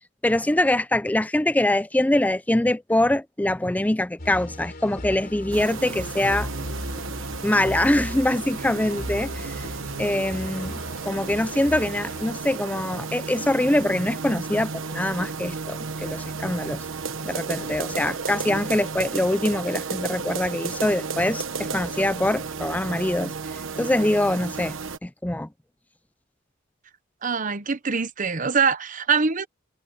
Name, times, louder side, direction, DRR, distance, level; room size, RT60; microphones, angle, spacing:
voice 1, 0.2-6.5 7.4-9.6 10.0-10.8 11.0-16.8 17.2-23.3 23.8-24.7 25.0-25.5, left 1 dB, 10° left, 0.5 m, -24 dB
sound 1, 4.2-12.2, left 1 dB, 50° left, 3.5 m, -37 dB
sound 2, 5.5-25.0, right 4 dB, 85° right, 1.2 m, -33 dB
voice 2, 27.2-29.5, right 5 dB, 45° right, 1.0 m, -23 dB
head